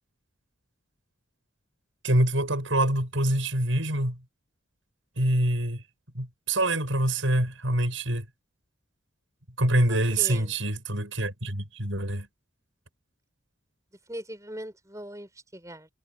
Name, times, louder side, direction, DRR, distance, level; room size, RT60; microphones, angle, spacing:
voice 1, 2.0-4.2 5.2-5.8 6.1-8.3 9.6-12.3, right 1 dB, 75° right, 7.6 m, -25 dB
voice 2, 9.9-10.5 14.1-15.9, right 1 dB, 15° right, 6.9 m, -40 dB
head